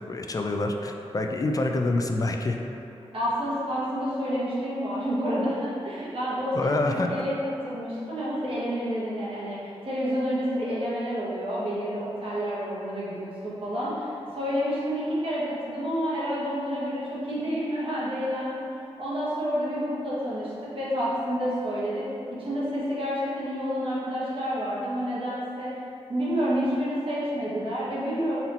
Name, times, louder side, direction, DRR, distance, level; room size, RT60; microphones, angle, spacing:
voice 1, 0.1-2.6 6.5-7.1, left 2 dB, 30° left, 3 dB, 0.4 m, -26 dB
voice 2, 3.1-18.7 19.0-22.1 22.4-25.7 26.1-28.4, equal, 55° right, -8 dB, 1.4 m, -29 dB
4.2 x 2.7 x 4.2 m, 2.8 s
cardioid pair, 60°, 11 cm